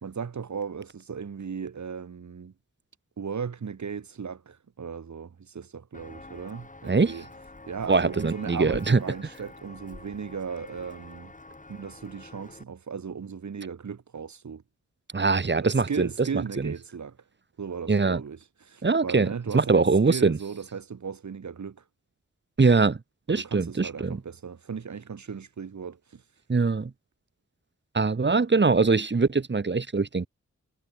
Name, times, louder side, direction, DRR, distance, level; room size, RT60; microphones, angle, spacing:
voice 1, 0.0-2.5 3.2-7.3 7.7-11.3 11.7-14.6 15.6-17.2 17.6-21.8 22.7-22.9 23.3-26.2, right 6 dB, 70° right, 1.9 m, -36 dB
Walk footsteps, 5.9-12.6, left 2 dB, 25° left, 4.1 m, -47 dB
voice 2, 7.9-9.0 15.1-16.7 17.9-18.2 18.8-19.3 19.5-20.4 22.6-23.0 23.3-24.2 26.5-26.9 27.9-30.3, right 4 dB, 35° right, 1.5 m, -22 dB
wide cardioid pair, 115°, 30 cm